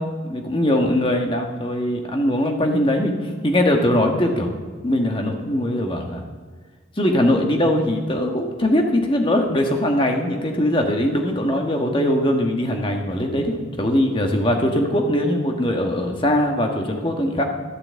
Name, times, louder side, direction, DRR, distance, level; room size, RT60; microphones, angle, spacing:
voice 1, 0.0-4.5 4.8-6.2 7.0-17.4, left 1 dB, 25° left, 3 dB, 1.4 m, -21 dB
13.0 x 8.8 x 7.5 m, 1.5 s
head